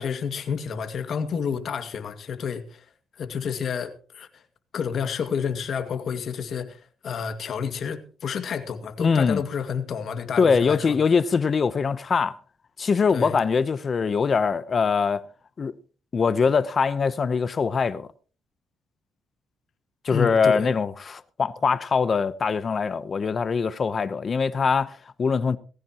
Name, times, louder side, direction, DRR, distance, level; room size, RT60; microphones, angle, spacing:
voice 1, 0.0-2.8 3.2-4.3 4.7-11.0 13.1-13.4 20.1-20.7, left 6 dB, 60° left, 2.0 m, -30 dB
voice 2, 9.0-9.4 10.4-12.4 12.8-15.2 15.6-15.7 16.1-18.1 20.0-25.6, left 5 dB, 40° left, 0.8 m, -23 dB
18.5 x 16.0 x 3.0 m
cardioid pair, 90°, 0 cm